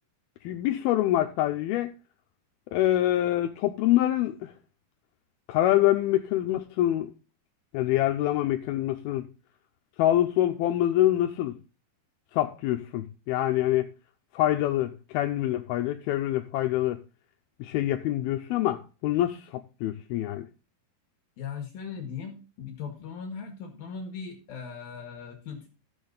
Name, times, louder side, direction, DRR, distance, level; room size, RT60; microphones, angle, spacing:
voice 1, 0.4-1.9 2.7-4.5 5.5-7.1 7.7-9.2 10.0-11.6 12.3-13.9 14.3-17.0 17.6-20.5, left 13 dB, 80° left, 2.4 m, -25 dB
voice 2, 21.4-25.7, left 6 dB, 65° left, 3.1 m, -39 dB
14.0 x 7.1 x 3.9 m
omnidirectional pair, 4.9 m